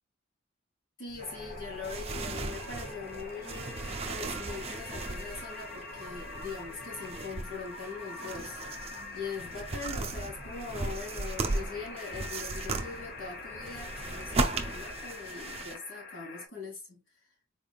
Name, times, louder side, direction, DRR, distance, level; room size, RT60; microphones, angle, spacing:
voice 1, 1.0-8.6 9.1-17.0, left 4 dB, 85° left, 2.4 m, -42 dB
sound 1, 1.1-15.7, right 3 dB, 30° right, 0.5 m, -37 dB
sound 2, 1.2-16.5, left 3 dB, 50° left, 0.8 m, -44 dB
4.1 x 3.4 x 2.3 m
head